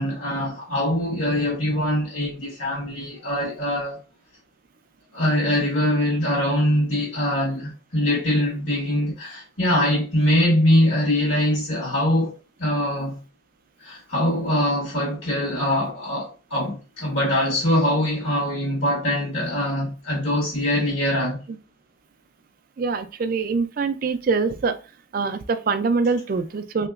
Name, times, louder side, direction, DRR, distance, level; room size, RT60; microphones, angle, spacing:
voice 1, 0.0-4.0 5.1-12.3 12.6-13.2 13.8-21.4, left 1 dB, 75° left, 1.4 m, -23 dB
voice 2, 22.8-24.7 25.1-26.9, right 4 dB, 45° right, 0.3 m, -24 dB
3.2 x 2.9 x 2.3 m
head